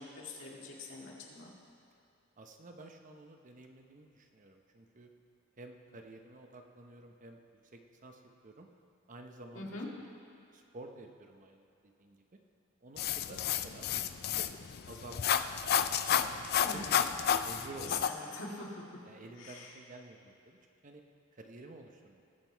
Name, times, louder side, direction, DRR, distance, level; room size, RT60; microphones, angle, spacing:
voice 1, 0.0-1.5 9.5-9.9 16.6-17.0 17.8-18.7 19.4-19.7, left 3 dB, 70° left, -3 dB, 2.2 m, -43 dB
voice 2, 2.4-5.1 5.6-7.4 7.7-8.7 9.1-9.8 10.5-12.4 12.8-15.4 15.9-18.4 19.0-21.0 21.3-22.2, right 2 dB, 40° right, 4 dB, 0.9 m, -51 dB
sound 1, 13.0-18.1, left 9 dB, 50° left, 0.4 m, -31 dB
19.5 x 7.7 x 4.6 m, 2.6 s
head